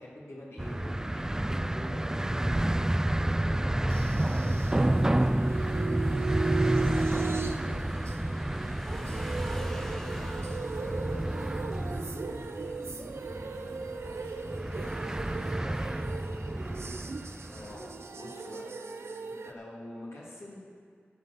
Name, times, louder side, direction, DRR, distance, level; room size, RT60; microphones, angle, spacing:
voice 1, 0.0-2.8 3.2-4.2 17.5-18.8 19.2-20.6, left 1 dB, 80° left, -5 dB, 2.8 m, -45 dB
sound 1, 0.6-17.8, right 1 dB, 15° right, 0.3 m, -30 dB
voice 2, 3.0-8.2 8.8-11.1 11.7-15.2 15.9-16.6, left 1 dB, 60° left, -6 dB, 2.3 m, -51 dB
sound 2, 3.9-19.5, right 4 dB, 80° right, 0.6 m, -37 dB
Motorcycle / Engine, 4.3-11.3, equal, 10° left, 0.9 m, -49 dB
11.5 x 7.5 x 6.8 m, 2.3 s
wide cardioid pair, 70°, 4 cm